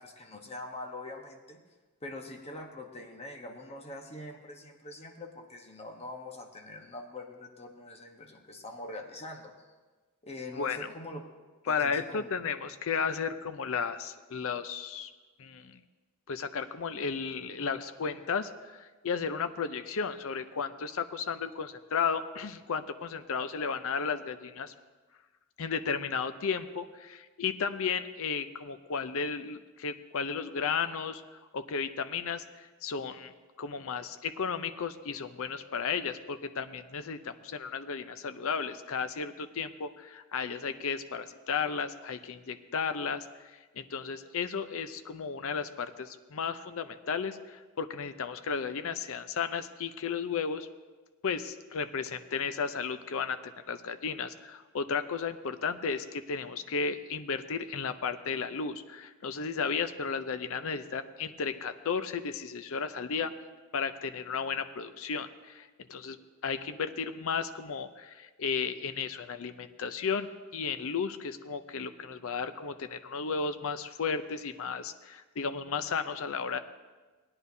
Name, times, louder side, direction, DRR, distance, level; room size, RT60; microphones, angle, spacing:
voice 1, 0.0-1.6 2.0-9.5 10.2-11.2 11.7-12.3, left 2 dB, 30° left, 3 dB, 1.0 m, -43 dB
voice 2, 10.5-10.9 11.7-15.1 15.4-15.8 16.3-24.7 25.6-33.3 33.6-43.3 43.5-50.7 51.2-63.3 63.7-66.2 66.4-76.6, left 5 dB, 70° left, 10 dB, 0.6 m, -34 dB
18.5 x 9.8 x 2.7 m, 1.3 s
head